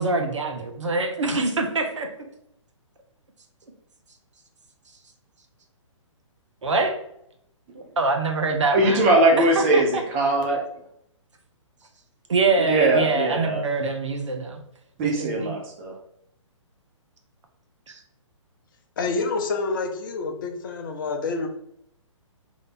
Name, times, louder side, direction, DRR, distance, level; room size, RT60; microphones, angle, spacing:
voice 1, 0.0-2.3 6.6-6.9 8.0-9.0 9.7-10.0 12.3-14.6 15.0-15.5 17.9-18.0, right 3 dB, 65° right, 4 dB, 0.8 m, -24 dB
voice 2, 8.7-10.6 12.6-13.6 15.0-15.9, right 2 dB, 25° right, 0 dB, 0.8 m, -21 dB
voice 3, 19.0-21.5, left 4 dB, 40° left, 4 dB, 0.7 m, -27 dB
3.2 x 3.0 x 4.0 m, 0.75 s
figure-of-eight pair, 125°, 17 cm